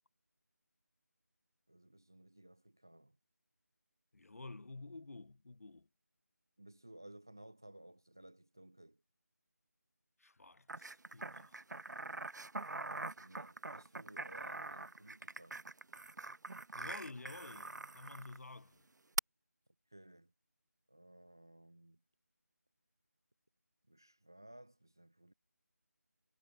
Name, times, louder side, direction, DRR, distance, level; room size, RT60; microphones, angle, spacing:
voice 1, 1.7-3.2 6.6-9.0 12.6-15.6 19.9-20.3 20.9-22.0 23.9-25.3, right 1 dB, 15° right, 0.3 m, -58 dB
voice 2, 4.1-5.9 10.2-11.6 16.7-18.8, left 3 dB, 60° left, 0.4 m, -51 dB
sound 1, 10.7-18.4 19.2-19.3, right 3 dB, 90° right, 0.4 m, -43 dB
figure-of-eight pair, 165°, 9 cm